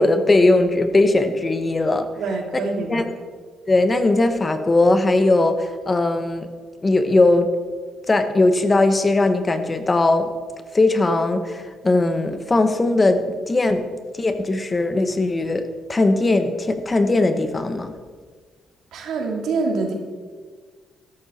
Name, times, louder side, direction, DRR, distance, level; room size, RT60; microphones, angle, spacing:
voice 1, 0.0-2.1 2.9-3.1 3.7-6.5 6.8-7.5 8.1-10.3 10.7-13.9 14.2-17.9, left 2 dB, 25° left, 9 dB, 1.1 m, -19 dB
voice 2, 2.2-3.1 18.9-19.9, right 3 dB, 75° right, 2 dB, 2.3 m, -25 dB
13.0 x 12.0 x 4.2 m, 1.5 s
cardioid pair, 90°, 0 cm